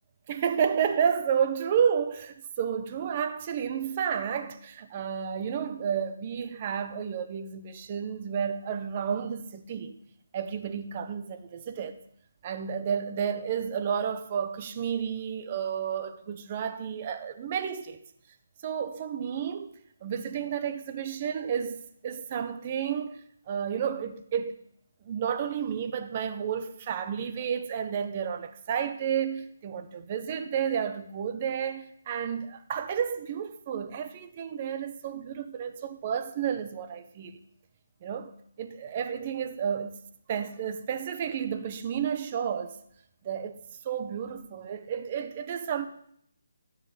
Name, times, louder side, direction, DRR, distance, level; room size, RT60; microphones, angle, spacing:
voice 1, 0.3-10.0 10.3-12.0 12.4-18.0 18.6-19.7 20.0-24.6 25.0-37.4 38.0-38.3 38.6-40.0 40.3-42.8 43.2-43.6 43.8-45.9, right 8 dB, 30° right, 1.1 m, -31 dB
14.5 x 5.5 x 9.6 m
hypercardioid pair, 165°, 0 cm